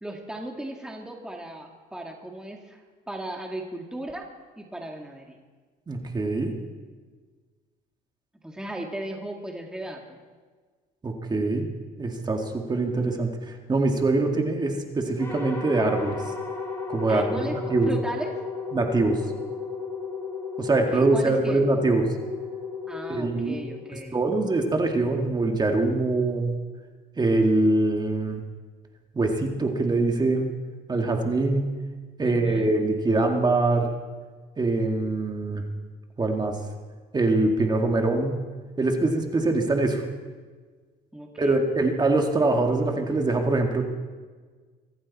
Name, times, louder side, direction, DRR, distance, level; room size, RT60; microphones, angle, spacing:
voice 1, 0.0-4.3 4.6-5.4 8.4-10.2 17.1-18.4 20.9-21.7 22.9-24.2 32.2-32.7 41.1-41.6, right 1 dB, 5° right, 1 dB, 1.9 m, -36 dB
voice 2, 5.9-6.5 11.0-11.7 12.0-16.2 16.9-17.3 17.7-17.9 18.7-19.2 20.6-22.0 23.1-23.6 24.1-26.5 27.2-28.4 29.2-30.5 30.9-31.7 32.2-33.9 34.6-35.6 36.2-36.5 37.1-38.4 38.8-40.0 41.4-43.9, right 2 dB, 25° right, 3 dB, 2.0 m, -23 dB
sound 1, 15.2-24.5, left 5 dB, 15° left, 3.5 m, -34 dB
24.0 x 14.5 x 4.2 m, 1.5 s
cardioid pair, 110°, 17 cm